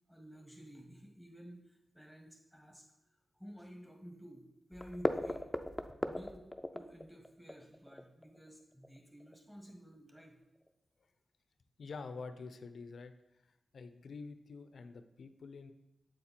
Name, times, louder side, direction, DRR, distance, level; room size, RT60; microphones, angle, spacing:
voice 1, 0.1-2.9 3.3-5.4 6.0-6.4 6.7-10.4, equal, 5° right, 1 dB, 1.6 m, -53 dB
sound 1, 4.7-9.3 9.7-9.8 10.2-10.3 10.6-10.7, left 1 dB, 15° left, 0.5 m, -37 dB
voice 2, 11.8-13.1 13.4-15.7, left 4 dB, 75° left, 10 dB, 0.5 m, -47 dB
7.7 x 4.3 x 4.2 m, 0.92 s
cardioid pair, 55°, 0 cm